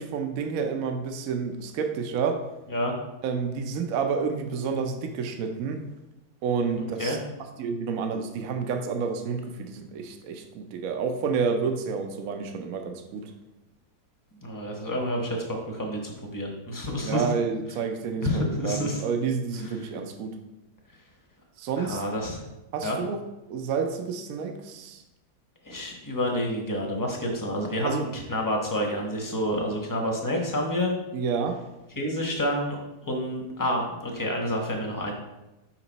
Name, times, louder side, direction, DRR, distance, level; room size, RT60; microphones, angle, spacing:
voice 1, 0.0-2.4 3.2-5.8 6.4-7.2 7.6-13.3 17.0-20.3 21.6-22.0 22.7-23.2 23.5-25.0 27.8-28.1 31.1-31.6, right 5 dB, 65° right, 5 dB, 1.0 m, -29 dB
voice 2, 14.4-17.3 18.2-19.0 21.8-22.4 22.8-23.0 25.6-30.9 32.0-35.1, equal, 15° left, 1 dB, 0.9 m, -29 dB
5.9 x 5.3 x 4.0 m, 0.99 s
omnidirectional pair, 1.8 m